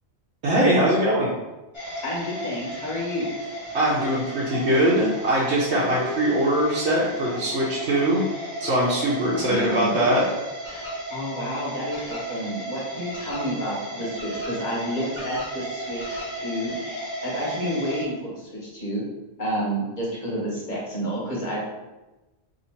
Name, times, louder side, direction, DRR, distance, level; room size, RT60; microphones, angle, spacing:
voice 1, 0.4-1.3 3.7-8.2 8.6-10.2, right 1 dB, 75° right, -7 dB, 1.0 m, -22 dB
sound 1, 1.7-18.0, right 1 dB, 25° left, 1.1 m, -35 dB
voice 2, 2.0-3.3 9.3-10.1 11.1-16.9 17.2-19.0 19.4-21.6, equal, 45° left, -5 dB, 1.3 m, -30 dB
Dog, 3.7-4.2 4.5-5.3 5.5-6.6 7.3-8.1 8.6-8.8 9.4-9.8 10.1-10.2, left 2 dB, 85° left, 1.0 m, -37 dB
2.9 x 2.8 x 4.2 m, 1.1 s
omnidirectional pair, 1.1 m